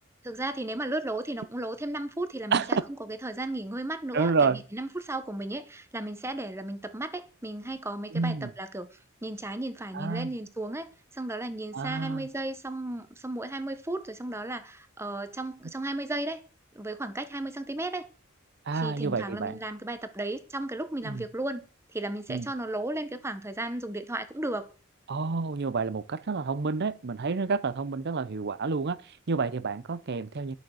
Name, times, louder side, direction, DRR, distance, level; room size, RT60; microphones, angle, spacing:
voice 1, 0.2-2.6 3.0-10.9 11.1-16.4 16.7-18.1 18.7-21.6 21.9-24.7, right 1 dB, 10° right, 0.9 m, -34 dB
voice 2, 2.5-2.8 4.1-4.6 8.1-8.5 9.9-10.3 11.7-12.3 18.7-19.6 21.0-21.2 22.3-22.5 25.1-30.6, right 4 dB, 55° right, 0.6 m, -29 dB
11.5 x 6.5 x 6.4 m
head